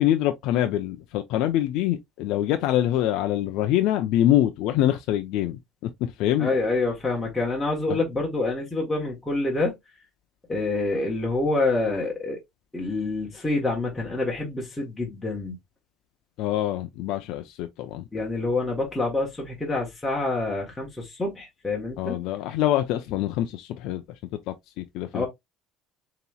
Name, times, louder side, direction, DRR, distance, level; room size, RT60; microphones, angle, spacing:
voice 1, 0.0-6.5 7.9-8.0 16.4-18.1 22.0-24.0 24.5-25.3, left 12 dB, 65° left, 0.5 m, -25 dB
voice 2, 6.4-9.7 10.5-12.4 12.7-15.5 18.1-22.2 25.1-25.3, left 2 dB, 10° left, 1.2 m, -27 dB
6.9 x 3.0 x 2.3 m
cardioid pair, 155°, 0 cm